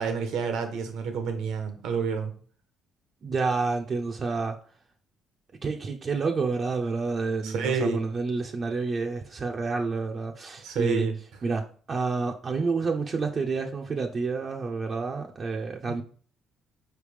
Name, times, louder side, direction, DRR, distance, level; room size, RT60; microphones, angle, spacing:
voice 1, 0.0-2.3 7.4-8.1 10.6-11.1 15.9-16.0, right 5 dB, 75° right, 0.9 m, -29 dB
voice 2, 3.2-4.6 5.6-11.1 11.4-16.0, right 4 dB, 45° right, 0.6 m, -29 dB
4.8 x 3.3 x 3.3 m
supercardioid pair, 80°, 0 cm